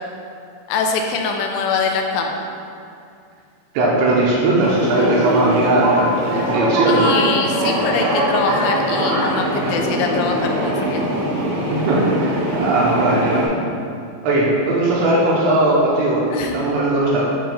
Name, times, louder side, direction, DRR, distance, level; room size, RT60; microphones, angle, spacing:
voice 1, 0.7-2.4 6.9-11.0 16.3-16.6, left 5 dB, 85° left, 2 dB, 2.9 m, -23 dB
voice 2, 3.7-7.1 9.6-9.7 11.9-13.5 14.2-17.2, right 2 dB, 80° right, -5 dB, 2.9 m, -18 dB
sound 1, 4.6-13.5, equal, 65° right, 3.0 m, -21 dB
10.5 x 5.0 x 2.2 m, 2.4 s
omnidirectional pair, 5.2 m